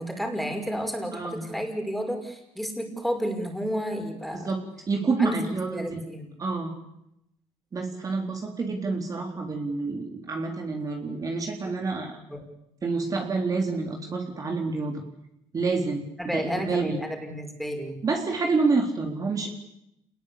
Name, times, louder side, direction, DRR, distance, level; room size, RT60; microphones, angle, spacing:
voice 1, 0.0-4.5 5.2-5.4 5.7-6.3 12.3-12.5 16.2-18.0, equal, ahead, 3 dB, 5.9 m, -31 dB
voice 2, 1.1-1.5 4.3-4.6 4.9-6.0 6.4-6.7 7.7-12.1 12.8-15.0 15.5-17.0 18.0-19.5, right 4 dB, 35° right, 2 dB, 3.9 m, -28 dB
27.0 x 20.5 x 8.7 m, 0.81 s
cardioid pair, 105°, 11 cm